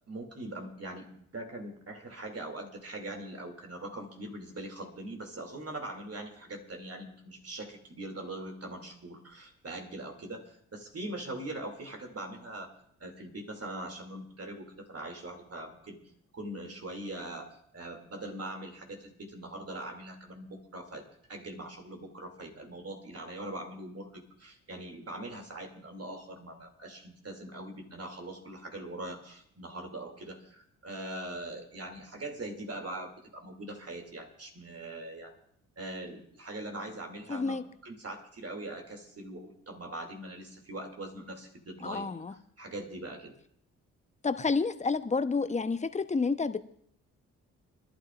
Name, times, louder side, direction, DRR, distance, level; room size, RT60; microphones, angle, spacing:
voice 1, 0.1-12.7 13.0-16.0 16.3-35.3 35.8-43.3, right 1 dB, 40° right, 3 dB, 2.7 m, -42 dB
voice 2, 37.3-37.6 41.8-42.3 44.2-46.6, left 4 dB, 20° left, 11 dB, 0.8 m, -29 dB
26.5 x 12.0 x 2.5 m, 0.66 s
hypercardioid pair, 40°, 39 cm